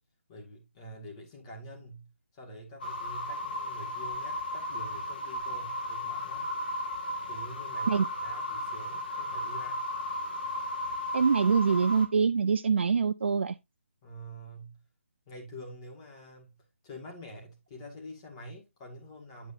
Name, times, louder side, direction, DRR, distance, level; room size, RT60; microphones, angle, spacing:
voice 1, 0.3-6.5 7.3-9.8 14.0-14.8 15.3-19.5, equal, 25° left, 2.1 m, -46 dB
sound 1, 2.8-12.1, left 1 dB, 45° left, 2.0 m, -35 dB
voice 2, 11.1-13.6, right 5 dB, 60° right, 0.4 m, -24 dB
8.2 x 8.0 x 2.6 m
figure-of-eight pair, 155°, 7 cm